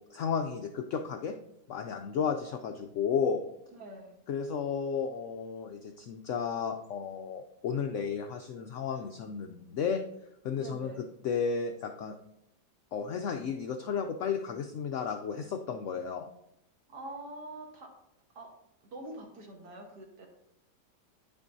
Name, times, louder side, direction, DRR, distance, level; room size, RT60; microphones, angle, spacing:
voice 1, 0.1-1.4 1.7-3.4 4.3-10.0 10.4-12.2 12.9-16.3, left 6 dB, 80° left, 5 dB, 0.7 m, -33 dB
voice 2, 3.7-4.1 8.9-9.1 10.6-11.1 16.9-17.9 18.4-18.5 18.9-20.3, right 2 dB, 70° right, 1 dB, 1.8 m, -45 dB
9.6 x 5.9 x 2.6 m, 0.79 s
omnidirectional pair, 1.8 m